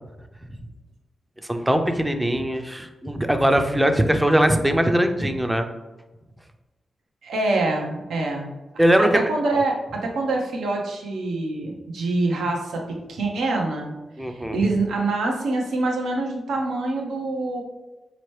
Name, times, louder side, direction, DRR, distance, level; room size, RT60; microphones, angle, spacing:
voice 1, 1.5-5.7 8.8-9.3 14.2-14.6, right 1 dB, 10° right, 6 dB, 0.5 m, -20 dB
voice 2, 7.2-8.5 9.0-13.9 14.2-17.6, right 2 dB, 85° right, 0 dB, 0.7 m, -25 dB
4.2 x 2.9 x 3.2 m, 1.1 s
cardioid pair, 55°, 0 cm